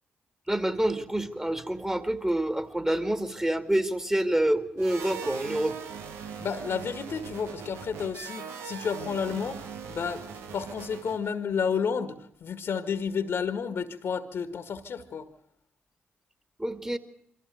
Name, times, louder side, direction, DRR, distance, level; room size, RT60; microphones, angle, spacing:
voice 1, 0.5-5.8 16.6-17.0, right 1 dB, 15° right, 9 dB, 2.2 m, -27 dB
sound 1, 4.8-11.3, right 6 dB, 85° right, 1.3 m, -40 dB
voice 2, 6.4-9.6 9.9-10.3 10.5-15.3, left 6 dB, 70° left, 10 dB, 1.7 m, -31 dB
23.0 x 15.0 x 8.1 m, 0.71 s
supercardioid pair, 45°, 4 cm